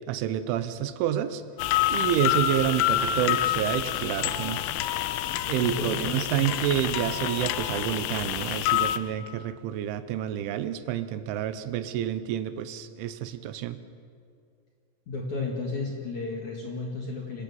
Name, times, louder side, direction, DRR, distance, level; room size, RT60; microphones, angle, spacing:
voice 1, 0.1-1.4 1.9-4.6 5.5-13.8, right 11 dB, 80° right, 12 dB, 3.3 m, -29 dB
sound 1, 1.6-9.0, left 12 dB, 85° left, 3.3 m, -27 dB
voice 2, 5.6-6.5 15.1-17.4, left 3 dB, 50° left, 0 dB, 2.5 m, -33 dB
27.5 x 17.0 x 7.2 m, 2.3 s
omnidirectional pair, 5.6 m